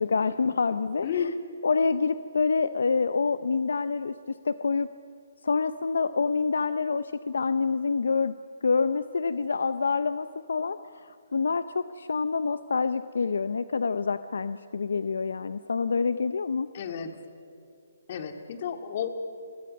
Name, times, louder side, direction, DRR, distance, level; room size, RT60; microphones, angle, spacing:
voice 1, 0.0-1.3 1.6-4.9 5.4-8.4 8.6-16.7, left 4 dB, 80° left, 13 dB, 0.6 m, -27 dB
voice 2, 1.0-1.3 16.7-17.2 18.1-19.1, left 8 dB, 45° left, 6 dB, 2.2 m, -31 dB
29.0 x 24.0 x 5.4 m, 2.5 s
hypercardioid pair, 150°, 0 cm